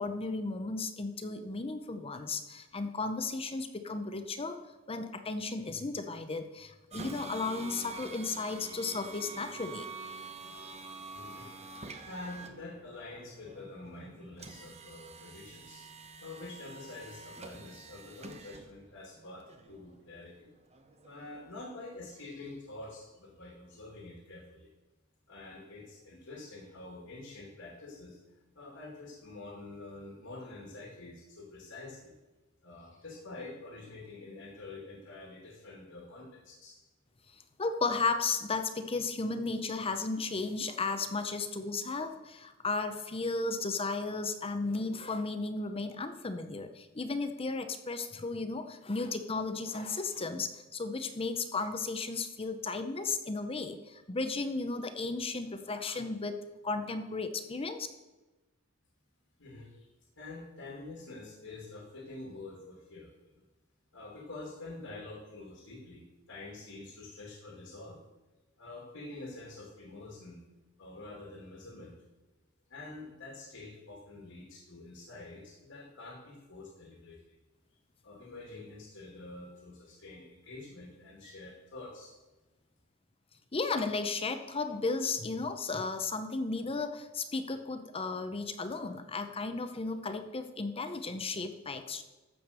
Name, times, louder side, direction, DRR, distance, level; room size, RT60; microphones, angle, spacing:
voice 1, 0.0-4.6 4.9-9.9 37.6-56.4 56.6-57.9 83.5-92.0, left 3 dB, 30° left, 8 dB, 0.7 m, -34 dB
sound 1, 6.9-21.5, right 3 dB, 30° right, 0.9 m, -47 dB
voice 2, 11.1-11.5 12.0-15.9 16.2-20.5 21.0-24.7 25.3-28.2 28.5-32.1 32.6-36.8 59.4-59.9 60.2-63.4 63.9-68.0 68.6-70.4 70.8-71.9 72.7-77.4 78.0-82.1, left 2 dB, 75° left, -2 dB, 2.6 m, -47 dB
14.0 x 5.2 x 6.7 m, 1.1 s
head